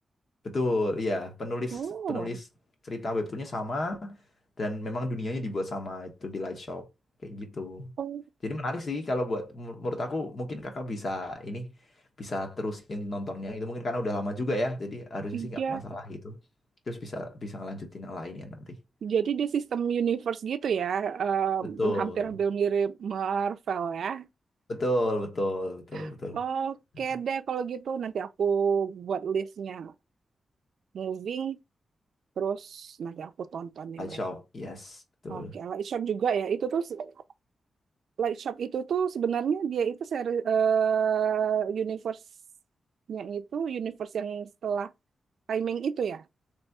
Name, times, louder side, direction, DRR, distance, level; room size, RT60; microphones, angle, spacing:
voice 1, 0.4-1.8 2.1-2.4 2.8-4.2 4.6-6.9 7.2-7.9 8.4-11.7 12.2-16.4 16.9-18.7 21.8-22.3 24.7-26.4 34.0-35.6, left 1 dB, 45° left, 1.2 m, -32 dB
voice 2, 1.7-2.4 8.0-8.3 15.3-15.8 19.0-24.3 25.9-29.9 30.9-31.6 32.4-34.2 35.3-37.1 38.2-42.2 43.1-44.9 45.5-46.2, right 7 dB, 80° right, 0.4 m, -29 dB
3.5 x 3.2 x 4.1 m
wide cardioid pair, 160°, 0 cm